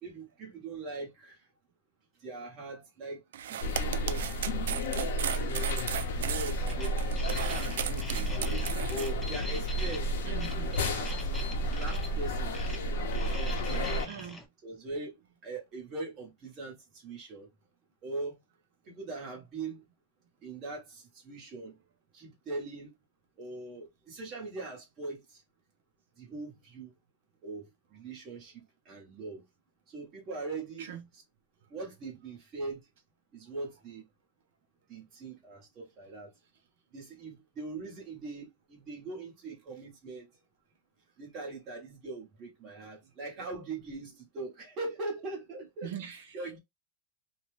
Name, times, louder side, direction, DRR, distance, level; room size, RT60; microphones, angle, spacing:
voice 1, 0.0-1.4 2.2-5.1 5.4-5.8 6.2-7.0 7.5-8.6 8.9-10.2 10.8-12.6 13.1-14.1 14.6-17.5 18.0-18.4 18.8-19.8 20.4-21.8 22.1-22.9 23.4-25.4 26.2-26.9 27.4-29.4 29.9-31.2 31.7-32.8 33.3-34.0 34.9-36.3 36.9-40.3 41.2-45.9 46.3-46.6, right 3 dB, 25° right, 1.2 m, -41 dB
sound 1, 3.3-9.1, right 9 dB, 85° right, 0.3 m, -36 dB
sound 2, 3.6-14.1, equal, 70° left, 0.7 m, -32 dB
sound 3, 6.0-14.4, left 1 dB, 5° left, 0.4 m, -45 dB
voice 2, 10.3-10.7 14.1-14.4 30.8-31.0 45.8-46.3, right 9 dB, 65° right, 0.7 m, -41 dB
2.7 x 2.2 x 3.2 m
supercardioid pair, 175°, 0 cm